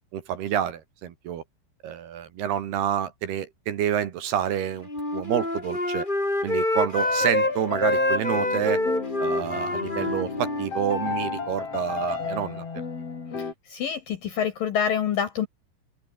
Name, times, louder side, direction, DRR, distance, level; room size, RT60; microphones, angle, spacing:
voice 1, 0.1-1.4 1.8-6.1 6.4-8.8 9.2-12.6, right 10 dB, 60° right, 3.4 m, -28 dB
Wind instrument woodwind instrument, 4.8-7.5 7.8-11.4, left 1 dB, 10° left, 4.2 m, -27 dB
sound 1, 6.9-13.5, left 5 dB, 35° left, 4.2 m, -33 dB
voice 2, 13.4-15.5, left 8 dB, 65° left, 2.4 m, -27 dB
open air
omnidirectional pair, 5.6 m